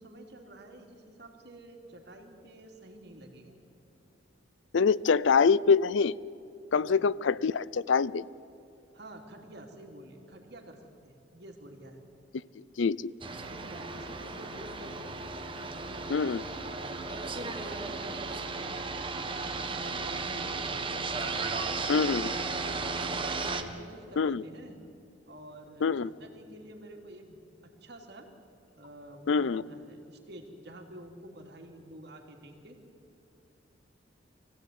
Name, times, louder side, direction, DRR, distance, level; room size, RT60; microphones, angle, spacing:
voice 1, 0.0-3.5 6.7-7.0 8.9-12.0 13.5-15.2 15.7-18.8 19.7-20.8 22.7-23.0 23.5-24.8 25.3-27.4 27.6-28.3 28.8-32.8, right 1 dB, 60° right, 2 dB, 3.0 m, -49 dB
voice 2, 4.7-6.1 6.7-8.2 12.8-13.1 16.1-16.4 21.9-22.3 24.2-24.4 25.8-26.1 29.3-29.6, left 5 dB, 75° left, 21 dB, 0.5 m, -25 dB
sound 1, 13.2-23.6, right 3 dB, 25° right, 1.4 m, -35 dB
25.0 x 16.5 x 9.5 m, 2.6 s
head